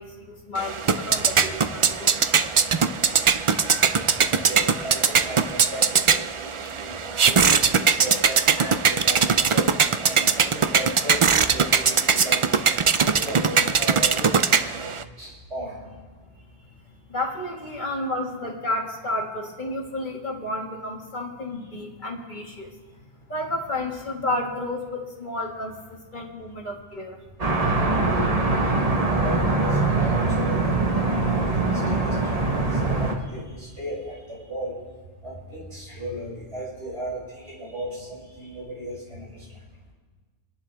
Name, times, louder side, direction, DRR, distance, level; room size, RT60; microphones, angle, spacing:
voice 1, 0.0-2.5 16.3-16.7 17.1-22.7 23.3-27.2, left 1 dB, 40° left, 0 dB, 1.9 m, -31 dB
sound 1, 0.6-15.0, right 6 dB, 55° right, 0.3 m, -21 dB
voice 2, 3.4-9.8 10.0-12.4 12.9-15.8 29.1-34.8 35.2-39.6, right 1 dB, 75° right, -7 dB, 6.5 m, -36 dB
sound 2, 27.4-33.1, right 3 dB, 35° right, 1.5 m, -22 dB
28.5 x 11.0 x 3.4 m, 1.4 s
omnidirectional pair, 1.2 m